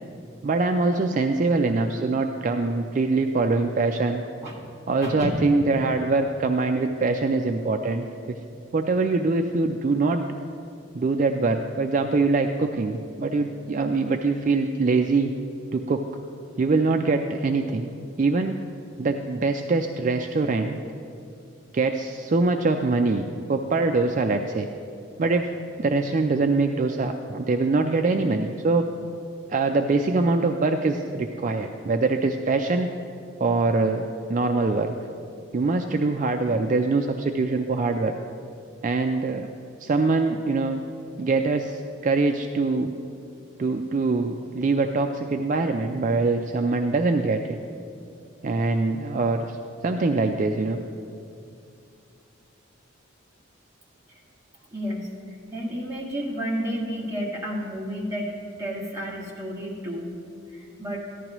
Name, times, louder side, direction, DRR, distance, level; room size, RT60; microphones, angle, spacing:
voice 1, 0.4-4.2 4.9-8.4 8.7-10.2 10.9-15.3 15.7-16.0 16.6-18.6 19.0-20.8 21.7-24.7 25.2-25.5 25.8-28.9 29.5-32.9 33.4-34.9 35.5-38.1 38.8-39.5 39.8-40.8 41.2-42.9 43.6-47.6 48.4-49.6 49.8-50.8, right 3 dB, 40° right, 5 dB, 0.3 m, -23 dB
voice 2, 5.0-5.4 54.7-58.3 58.6-60.1 60.5-61.0, equal, 15° right, -6 dB, 1.6 m, -31 dB
14.5 x 11.0 x 3.0 m, 2.5 s
head